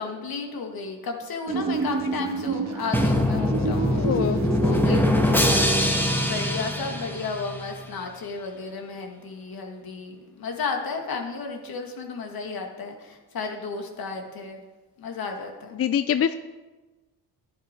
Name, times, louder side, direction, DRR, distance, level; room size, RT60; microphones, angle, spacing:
voice 1, 0.0-4.1 4.6-14.6 15.0-15.8, left 4 dB, 60° left, 3 dB, 2.1 m, -33 dB
sound 1, 1.5-5.5, right 4 dB, 45° right, 1.8 m, -29 dB
Drum, 2.9-7.8, left 1 dB, 5° left, 1.5 m, -23 dB
voice 2, 3.6-4.4 15.8-16.4, left 8 dB, 35° left, 12 dB, 0.5 m, -25 dB
11.0 x 9.8 x 4.6 m, 1.2 s
cardioid pair, 75°, 39 cm